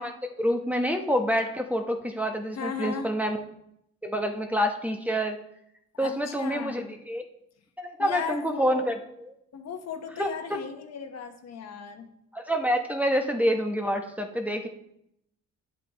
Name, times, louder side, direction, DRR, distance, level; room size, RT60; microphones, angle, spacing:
voice 1, 0.0-3.4 4.0-5.4 6.0-6.8 7.1-7.2 7.8-8.9 10.2-10.3 12.3-14.7, equal, 5° right, 2 dB, 0.9 m, -27 dB
voice 2, 2.5-3.1 5.9-7.0 8.0-8.8 9.5-12.1, left 6 dB, 60° left, 6 dB, 1.1 m, -36 dB
10.0 x 7.9 x 3.0 m, 0.77 s
cardioid pair, 90°, 30 cm